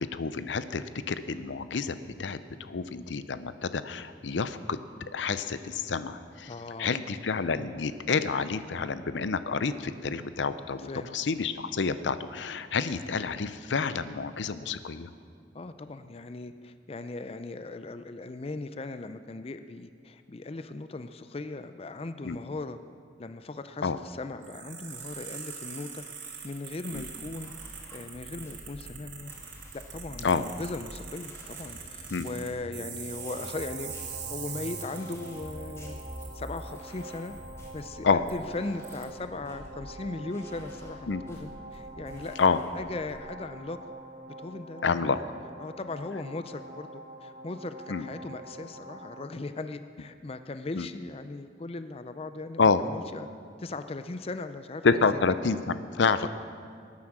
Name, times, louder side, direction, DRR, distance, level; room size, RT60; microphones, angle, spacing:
voice 1, 0.0-4.8 5.1-6.5 6.8-15.1 22.2-22.4 23.8-24.0 26.9-27.0 30.2-30.4 32.1-32.3 38.0-38.2 41.1-41.2 42.4-42.6 44.8-45.2 47.9-48.1 50.8-50.9 52.6-52.8 54.8-56.3, left 5 dB, 80° left, 13 dB, 0.6 m, -28 dB
voice 2, 6.5-7.0 10.8-11.2 15.5-22.8 23.2-26.0 26.4-27.5 27.9-29.3 29.7-33.9 34.3-36.0 36.3-37.3 37.7-42.4 42.7-43.8 44.4-45.2 45.6-53.3 53.6-55.1 56.2-56.3, left 2 dB, 30° left, 10 dB, 0.5 m, -38 dB
sound 1, 24.4-37.8 38.3-38.4 38.8-39.0, right 7 dB, 80° right, 2.7 m, -43 dB
sound 2, 26.9-43.1, equal, 15° left, 2.2 m, -47 dB
sound 3, 33.1-49.3, right 1 dB, 50° right, 2.3 m, -46 dB
19.5 x 9.6 x 6.1 m, 2.2 s
head